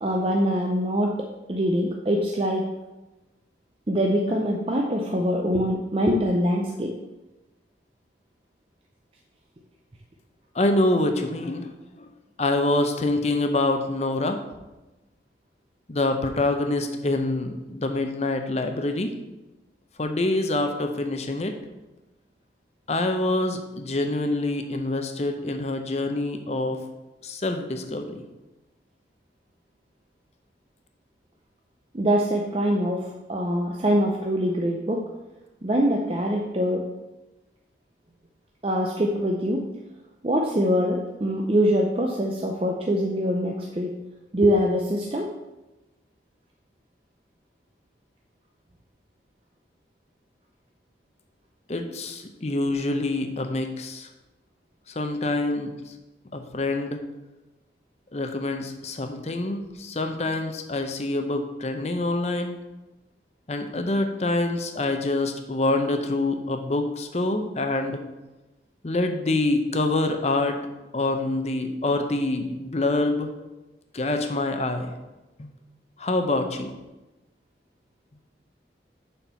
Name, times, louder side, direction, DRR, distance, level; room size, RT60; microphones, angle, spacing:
voice 1, 0.0-2.7 3.9-6.9 31.9-35.1 35.6-36.9 38.6-39.7 40.2-44.0 44.3-45.3, equal, 30° right, 0 dB, 0.6 m, -24 dB
voice 2, 10.5-11.7 12.0-12.1 12.4-14.4 15.9-19.1 20.0-21.5 22.9-26.8 27.2-28.2 51.7-54.1 54.9-55.9 56.3-57.0 58.1-62.6 63.5-68.0 68.8-70.6 70.9-73.3 73.9-74.9 75.4-75.5 76.0-76.7, left 2 dB, 35° left, 5 dB, 0.7 m, -26 dB
7.2 x 4.4 x 5.6 m, 1.0 s
head